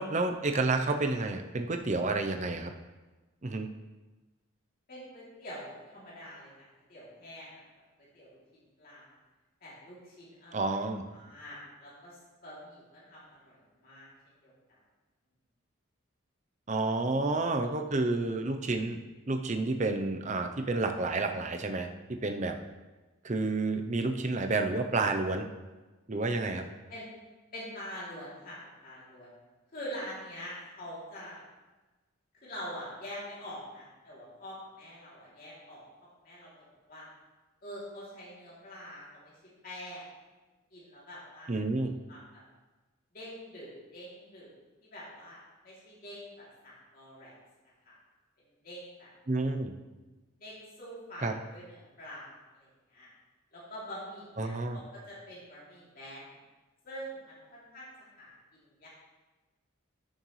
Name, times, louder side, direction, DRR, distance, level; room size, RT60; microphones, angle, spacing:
voice 1, 0.0-2.7 3.4-3.7 10.5-11.0 16.7-19.0 19.3-22.6 23.2-25.5 26.1-26.7 41.5-41.9 49.3-49.7 51.2-51.3 54.4-54.8, right 3 dB, 35° right, 6 dB, 0.6 m, -30 dB
voice 2, 4.9-7.6 8.1-8.4 8.8-9.2 9.6-10.8 11.1-14.1 14.4-14.8 26.9-27.1 27.5-29.3 29.7-31.4 32.3-35.8 36.2-36.5 36.9-37.1 37.6-39.3 39.6-40.0 40.7-41.5 42.1-42.4 43.1-44.5 44.8-45.4 45.6-47.3 47.8-47.9 48.6-49.1 50.4-53.1 53.5-56.3 56.8-58.9, equal, 45° left, -7 dB, 2.9 m, -45 dB
13.0 x 6.4 x 3.2 m, 1.2 s
head